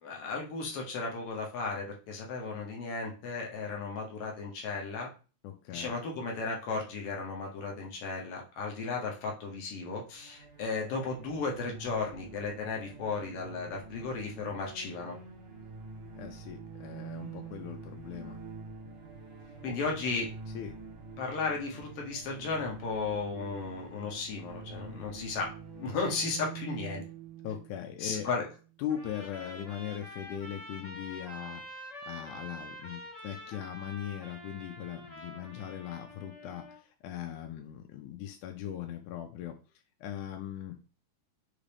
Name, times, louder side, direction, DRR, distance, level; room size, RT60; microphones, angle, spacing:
voice 1, 0.0-5.1 5.7-15.2 19.6-20.3 21.2-25.5 25.8-27.0 28.0-28.4, left 4 dB, 70° left, 0 dB, 1.5 m, -35 dB
voice 2, 5.4-5.9 16.2-18.4 19.7-19.8 20.6-20.8 27.4-28.3 28.8-39.6 40.0-40.8, left 10 dB, 85° left, 4 dB, 2.0 m, -40 dB
sound 1, 10.1-28.8, right 5 dB, 55° right, 1.6 m, -46 dB
Trumpet, 28.9-36.8, equal, 40° left, 0.5 m, -46 dB
5.5 x 2.5 x 3.3 m, 0.35 s
omnidirectional pair, 3.4 m